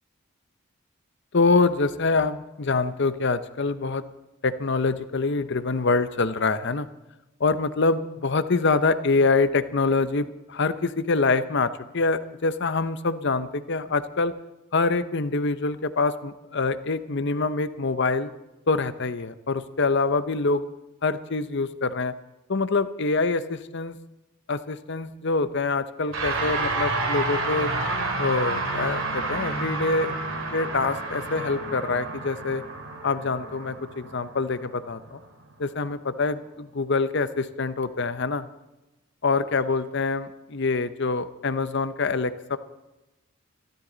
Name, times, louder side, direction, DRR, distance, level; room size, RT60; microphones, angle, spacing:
voice 1, 1.3-4.0 4.4-6.9 7.4-14.3 14.7-18.3 18.7-20.6 21.0-22.1 22.5-24.0 24.5-27.7 28.2-30.1 30.5-32.6 33.0-35.2 35.6-38.5 39.2-42.6, left 3 dB, 55° left, 12 dB, 0.8 m, -25 dB
sound 1, 26.1-35.6, right 2 dB, 65° right, 2.8 m, -30 dB
26.0 x 13.0 x 4.0 m, 0.99 s
head